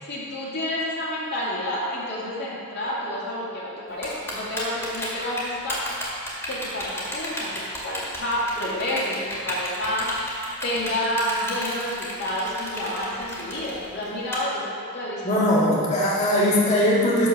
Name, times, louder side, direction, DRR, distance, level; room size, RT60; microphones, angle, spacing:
voice 1, 0.0-5.8 6.5-10.1 10.6-15.2, left 1 dB, 50° left, -6 dB, 2.3 m, -29 dB
Typing, 4.0-14.4, left 1 dB, 10° left, 2.1 m, -33 dB
voice 2, 15.2-17.3, left 1 dB, 30° left, -6 dB, 1.8 m, -20 dB
11.0 x 4.6 x 6.7 m, 2.4 s
head